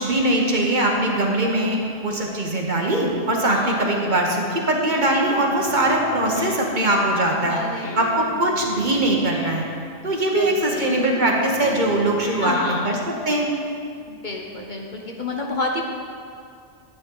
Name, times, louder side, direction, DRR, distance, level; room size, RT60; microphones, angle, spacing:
voice 1, 0.0-7.6 7.9-9.6 10.0-13.5, right 1 dB, 40° right, 0 dB, 1.2 m, -21 dB
voice 2, 3.5-3.9 6.2-6.7 7.4-8.0 10.3-10.9 12.4-13.0 14.1-15.8, left 2 dB, 45° left, 0 dB, 0.9 m, -29 dB
Guitar, 4.5-13.2, left 1 dB, 65° left, 1.6 m, -37 dB
12.5 x 8.4 x 3.8 m, 2.3 s
omnidirectional pair, 1.2 m